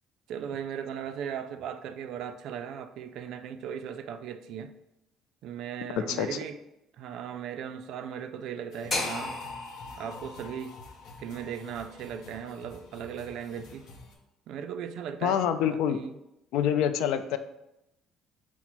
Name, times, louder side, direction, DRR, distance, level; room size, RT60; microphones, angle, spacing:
voice 1, 0.3-4.7 5.4-6.6 7.0-9.4 10.0-10.8 11.2-13.9 14.5-16.2, right 8 dB, 60° right, 0.3 m, -37 dB
voice 2, 6.0-6.3 15.2-16.0 16.5-17.4, left 9 dB, 85° left, 0.3 m, -26 dB
sound 1, 8.7-14.1, left 2 dB, 65° left, 0.7 m, -50 dB
sound 2, 8.9-13.0, left 2 dB, 30° left, 1.0 m, -37 dB
5.7 x 2.0 x 4.5 m
cardioid pair, 160°, 0 cm